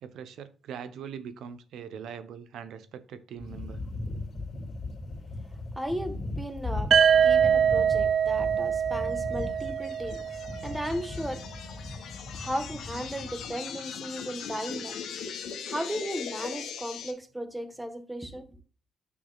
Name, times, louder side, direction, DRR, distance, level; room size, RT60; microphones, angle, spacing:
voice 1, 0.0-3.8, right 7 dB, 75° right, 0.9 m, -42 dB
sound 1, 3.4-13.5, left 2 dB, 45° left, 2.5 m, -38 dB
voice 2, 5.8-10.2 10.6-11.4 12.3-15.0 15.7-18.6, equal, 5° right, 1.3 m, -35 dB
sound 2, 6.9-10.8, right 8 dB, 55° right, 0.3 m, -24 dB
sound 3, 9.4-17.1, left 7 dB, 75° left, 1.5 m, -40 dB
9.3 x 6.2 x 2.4 m
cardioid pair, 90°, 0 cm